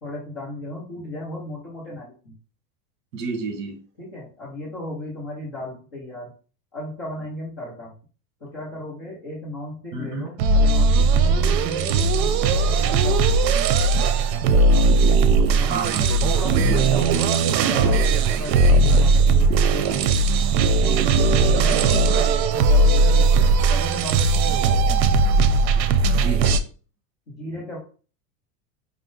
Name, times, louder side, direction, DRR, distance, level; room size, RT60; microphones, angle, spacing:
voice 1, 0.0-2.3 4.0-6.3 6.7-7.9 8.4-13.6 15.0-17.3 17.6-20.2 20.8-24.8 27.3-27.8, left 1 dB, 20° left, -7 dB, 0.3 m, -35 dB
voice 2, 3.1-3.8 9.9-10.3 15.7-16.1 26.1-26.6, right 4 dB, 70° right, 5 dB, 1.3 m, -30 dB
sound 1, 10.4-26.6, right 3 dB, 90° right, 0.7 m, -18 dB
4.9 x 2.0 x 3.7 m, 0.38 s
supercardioid pair, 180°, 50 cm